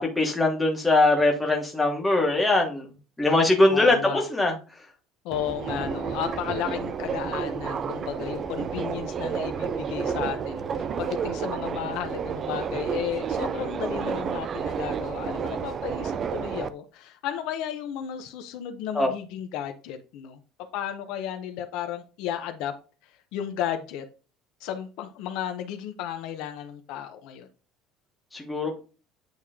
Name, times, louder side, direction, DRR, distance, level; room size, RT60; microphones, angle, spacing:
voice 1, 0.0-2.9 3.2-4.5 18.9-19.1 28.3-28.8, left 2 dB, 5° left, 0 dB, 1.1 m, -22 dB
voice 2, 3.7-4.3 5.2-20.4 20.7-22.7 23.0-24.0 24.6-27.5, left 10 dB, 60° left, 7 dB, 0.7 m, -34 dB
Subway metro underground, 5.3-16.7, right 6 dB, 25° right, 0.3 m, -31 dB
8.9 x 3.0 x 3.6 m, 0.34 s
cardioid pair, 180°, 0 cm